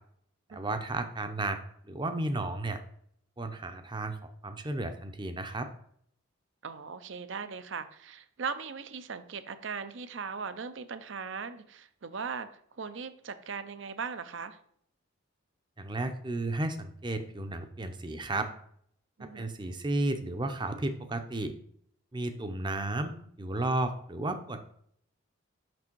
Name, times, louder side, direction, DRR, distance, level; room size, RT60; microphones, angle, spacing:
voice 1, 0.5-1.6 1.8-2.8 3.4-5.7 15.8-18.5 19.2-21.5 22.1-24.7, right 2 dB, 20° right, 8 dB, 0.6 m, -33 dB
voice 2, 6.6-14.6 19.2-19.5, right 5 dB, 60° right, 12 dB, 0.6 m, -39 dB
6.1 x 6.1 x 4.5 m, 0.67 s
head